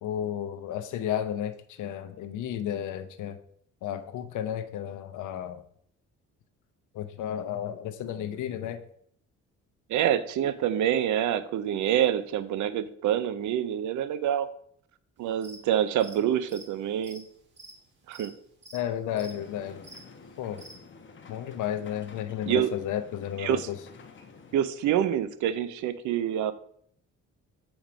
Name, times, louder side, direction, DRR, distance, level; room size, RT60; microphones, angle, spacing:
voice 1, 0.0-3.4 3.8-5.6 6.9-8.8 18.7-19.8 20.4-20.6 21.3-23.8, left 10 dB, 80° left, 9 dB, 0.7 m, -33 dB
voice 2, 9.9-14.5 15.2-17.2 18.1-18.3 22.5-22.7 23.4-23.7 24.5-26.5, right 10 dB, 75° right, 13 dB, 0.6 m, -26 dB
sound 1, 15.2-15.6 15.9-20.8, right 2 dB, 40° right, 1.9 m, -49 dB
sound 2, 19.1-24.6, left 4 dB, 40° left, 1.0 m, -49 dB
7.1 x 3.0 x 5.0 m, 0.64 s
cardioid pair, 90°, 30 cm